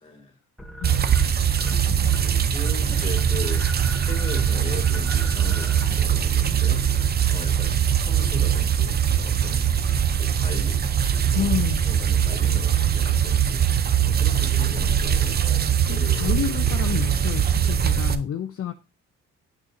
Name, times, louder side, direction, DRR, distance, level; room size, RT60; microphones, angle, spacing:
voice 1, 0.0-0.3 2.2-9.8 10.1-10.9 11.3-15.5 15.9-16.5, left 2 dB, 20° left, 3 dB, 1.8 m, -39 dB
sound 1, 0.6-1.8 2.1-2.4 2.7-7.4, equal, ahead, 0.9 m, -41 dB
voice 2, 0.8-1.3 1.6-2.2 11.3-11.8 15.8-18.7, left 9 dB, 50° left, 7 dB, 0.6 m, -30 dB
sound 2, 0.8-18.1, right 9 dB, 35° right, 0.6 m, -22 dB
7.5 x 6.2 x 2.7 m, 0.30 s
cardioid pair, 90°, 30 cm